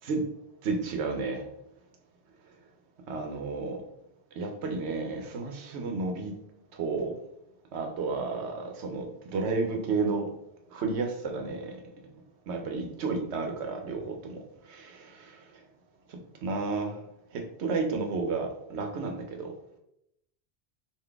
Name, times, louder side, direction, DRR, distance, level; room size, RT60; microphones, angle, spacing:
voice 1, 0.6-1.5 3.1-3.8 4.4-6.4 6.7-7.2 7.7-10.3 10.7-11.8 12.5-15.4 16.1-17.0 17.3-19.5, right 4 dB, 90° right, 4 dB, 1.0 m, -32 dB
3.8 x 2.5 x 3.4 m, 0.79 s
omnidirectional pair, 1.1 m